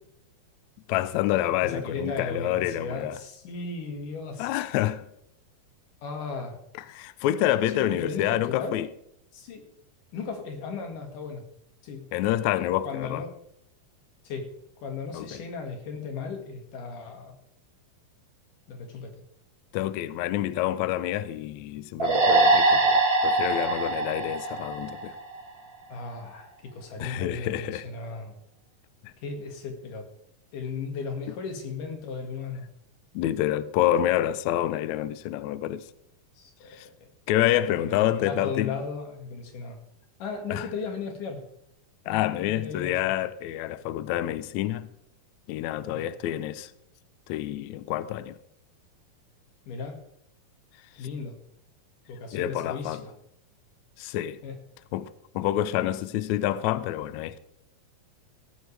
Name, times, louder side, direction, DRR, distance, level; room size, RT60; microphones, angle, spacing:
voice 1, 0.9-3.2 4.4-5.0 6.7-8.9 12.1-13.2 15.1-15.4 19.7-25.2 27.0-27.9 29.0-29.1 33.1-35.9 36.7-36.9 37.3-38.8 40.5-40.7 42.1-44.9 45.5-46.7 47.3-48.3 52.3-53.0 54.0-54.4 54.9-57.4, left 13 dB, 85° left, 1.6 m, -28 dB
voice 2, 1.6-4.5 6.0-6.6 7.7-8.8 9.3-9.6 10.1-11.4 11.8-12.1 12.8-13.3 14.3-17.4 18.7-19.3 25.9-28.4 29.2-30.1 30.5-32.7 36.4-37.1 37.8-39.8 40.2-41.4 42.1-43.0 45.9-46.1 49.7-50.0 51.0-51.4 52.1-53.1 54.4-54.6, left 4 dB, 65° left, 3.5 m, -36 dB
sound 1, 22.0-25.5, right 2 dB, 55° right, 0.6 m, -23 dB
16.5 x 14.0 x 3.4 m
omnidirectional pair, 4.0 m